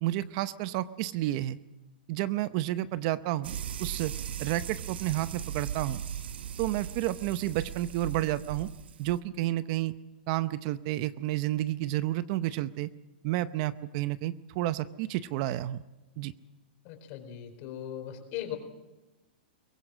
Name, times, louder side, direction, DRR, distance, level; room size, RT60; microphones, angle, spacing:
voice 1, 0.0-1.6 2.1-4.1 4.4-6.0 6.6-8.7 9.0-10.0 10.3-12.9 13.2-15.8 16.2-16.3, right 15 dB, 40° right, 14 dB, 0.7 m, -31 dB
sound 1, 3.4-9.2, right 9 dB, 80° right, 0.9 m, -38 dB
voice 2, 16.8-18.6, left 11 dB, 40° left, 6 dB, 4.4 m, -39 dB
22.5 x 18.0 x 7.6 m, 1.1 s
hypercardioid pair, 150°, 6 cm